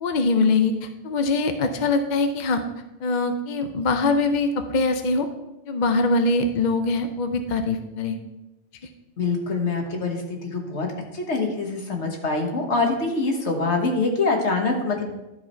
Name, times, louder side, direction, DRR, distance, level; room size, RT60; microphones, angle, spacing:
voice 1, 0.0-2.6 3.0-5.3 5.7-8.2, left 3 dB, 50° left, 7 dB, 0.6 m, -23 dB
voice 2, 9.2-10.9 11.1-15.0, left 3 dB, 65° left, 2 dB, 1.6 m, -24 dB
12.0 x 4.8 x 4.4 m, 0.97 s
omnidirectional pair, 1.3 m